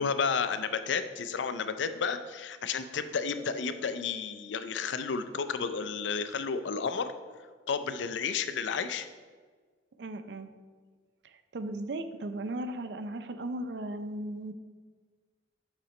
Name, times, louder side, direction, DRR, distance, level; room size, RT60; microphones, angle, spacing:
voice 1, 0.0-7.1 7.7-9.1, left 5 dB, 80° left, 11 dB, 0.5 m, -32 dB
voice 2, 10.0-10.5 11.2-14.5, right 1 dB, 65° right, 10 dB, 0.5 m, -37 dB
7.6 x 5.8 x 3.2 m, 1.5 s
head